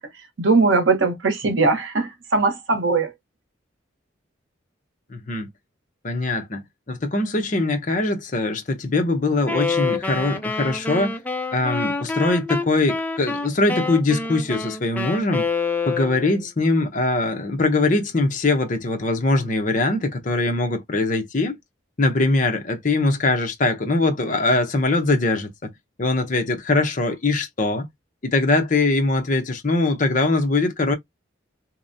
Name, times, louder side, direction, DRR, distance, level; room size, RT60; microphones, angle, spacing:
voice 1, 0.4-3.1, right 3 dB, 75° right, 0.8 m, -20 dB
voice 2, 5.1-5.5 6.0-11.2 11.5-15.5 15.9-21.6 22.0-25.7 26.0-27.9 28.2-30.9, left 2 dB, 40° left, 0.7 m, -22 dB
Wind instrument woodwind instrument, 9.4-16.4, left 4 dB, 10° left, 0.3 m, -27 dB
2.9 x 2.0 x 2.6 m
head